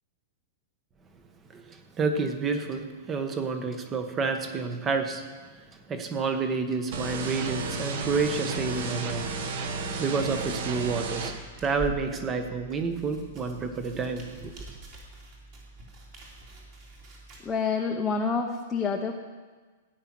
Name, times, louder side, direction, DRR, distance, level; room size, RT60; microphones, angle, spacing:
voice 1, 1.5-5.2 5.9-9.3 10.0-14.5, right 4 dB, 15° right, 7 dB, 1.1 m, -29 dB
sound 1, 6.9-11.3, right 3 dB, 50° right, 1.5 m, -32 dB
sound 2, 10.4-17.4, right 2 dB, 35° right, 2.9 m, -44 dB
voice 2, 17.4-19.2, left 5 dB, 10° left, 0 dB, 0.8 m, -28 dB
15.5 x 9.5 x 6.1 m, 1.4 s
supercardioid pair, 165°, 0 cm